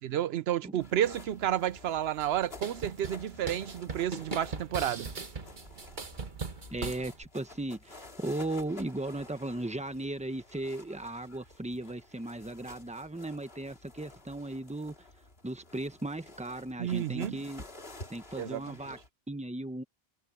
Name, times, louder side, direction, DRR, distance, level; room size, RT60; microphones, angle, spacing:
voice 1, 0.0-5.1 16.8-17.4 18.4-18.6, right 11 dB, 80° right, 0.8 m, -31 dB
sound 1, 0.8-19.1, left 2 dB, 70° left, 3.6 m, -51 dB
sound 2, 2.2-7.2, right 4 dB, 50° right, 1.6 m, -40 dB
voice 2, 6.7-15.1 15.4-17.6 18.1-19.0 19.3-19.8, right 2 dB, 5° right, 1.1 m, -37 dB
omnidirectional pair, 1.0 m